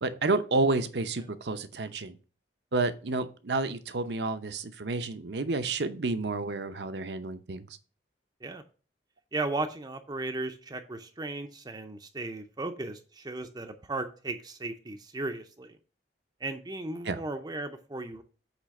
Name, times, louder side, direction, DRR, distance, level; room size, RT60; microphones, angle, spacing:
voice 1, 0.0-2.2 2.7-7.7 17.1-17.2, right 3 dB, 65° right, 10 dB, 0.8 m, -30 dB
voice 2, 9.3-15.8 16.4-18.2, right 2 dB, 25° right, 6 dB, 0.6 m, -36 dB
8.2 x 3.3 x 6.4 m, 0.37 s
head